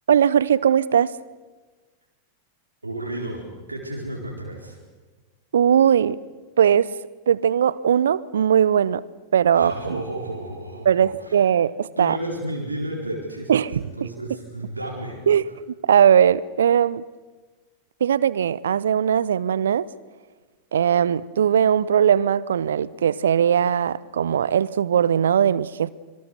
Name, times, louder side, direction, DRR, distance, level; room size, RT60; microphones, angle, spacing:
voice 1, 0.1-1.2 5.5-6.2 6.6-6.9 7.3-9.0 9.3-10.0 10.8-12.2 13.5-14.1 15.3-15.5 15.8-17.0 18.0-19.9 20.7-25.9, right 8 dB, 65° right, 21 dB, 0.7 m, -19 dB
voice 2, 2.8-4.8 9.5-11.4 12.0-15.2, right 1 dB, 80° right, 0 dB, 4.3 m, -32 dB
26.0 x 24.0 x 6.8 m, 1.3 s
figure-of-eight pair, 90°, 0 cm